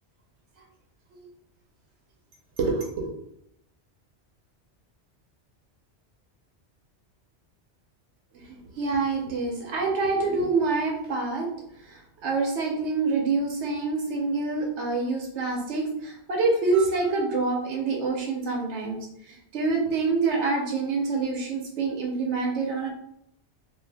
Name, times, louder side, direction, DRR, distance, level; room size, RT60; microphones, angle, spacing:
voice 1, 2.6-3.1 8.5-11.5 11.8-19.0 19.3-22.9, right 3 dB, 80° right, 0 dB, 0.9 m, -26 dB
2.6 x 2.4 x 3.2 m, 0.75 s
omnidirectional pair, 1.2 m